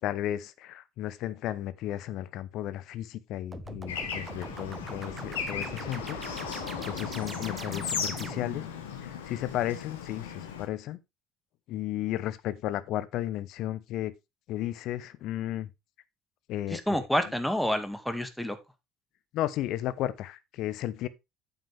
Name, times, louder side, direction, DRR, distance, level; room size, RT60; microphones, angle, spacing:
voice 1, 0.0-6.2 6.9-8.6 9.3-10.3 10.6-11.0 11.7-14.1 14.5-15.7 16.5-17.0 19.3-21.1, left 13 dB, 60° left, 0.9 m, -34 dB
sound 1, 3.5-8.7, right 3 dB, 25° right, 1.2 m, -41 dB
Bird / Traffic noise roadway noise, 3.9-10.7, left 7 dB, 75° left, 1.5 m, -36 dB
voice 2, 16.7-18.6, equal, 5° left, 2.0 m, -28 dB
8.9 x 8.2 x 3.4 m
figure-of-eight pair, 55°, 0 cm